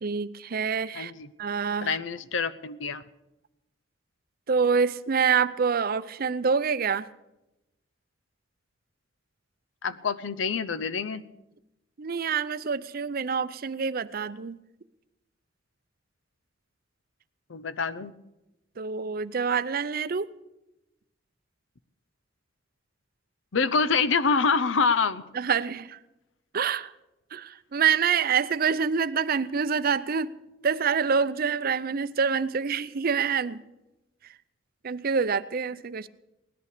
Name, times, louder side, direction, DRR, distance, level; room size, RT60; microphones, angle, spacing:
voice 1, 0.0-1.1 1.4-2.0 4.5-7.1 12.0-14.6 18.8-20.3 25.3-26.0 26.5-26.9 27.3-30.3 30.6-33.6 34.8-36.1, right 6 dB, 50° right, 14 dB, 0.6 m, -26 dB
voice 2, 0.9-1.3 1.8-3.0 9.8-11.2 17.5-18.1 23.5-25.2, left 5 dB, 80° left, 15 dB, 0.7 m, -26 dB
18.0 x 11.0 x 6.7 m, 0.95 s
head